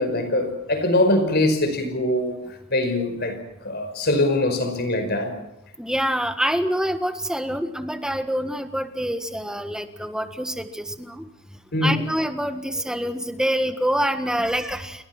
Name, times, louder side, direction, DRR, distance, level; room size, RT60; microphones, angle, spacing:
voice 1, 0.0-2.4 2.7-5.3 11.7-12.1, left 1 dB, 50° left, 8 dB, 5.2 m, -22 dB
voice 2, 5.8-11.3 11.8-15.1, equal, 5° right, 8 dB, 1.6 m, -26 dB
29.5 x 23.5 x 6.0 m, 0.87 s
head